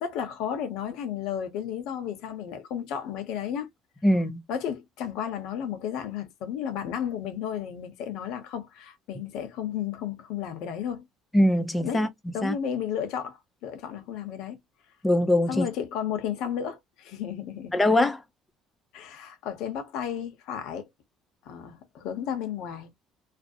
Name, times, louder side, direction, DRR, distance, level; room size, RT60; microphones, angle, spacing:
voice 1, 0.0-3.7 4.5-11.1 11.8-12.0 12.3-14.6 15.5-17.8 18.9-20.9 21.4-22.9, left 9 dB, 75° left, 0.7 m, -33 dB
voice 2, 4.0-4.4 11.3-12.1 12.4-12.6 15.0-15.7 17.7-18.2, left 1 dB, 10° left, 0.5 m, -22 dB
2.4 x 2.0 x 2.6 m
cardioid pair, 145°, 0 cm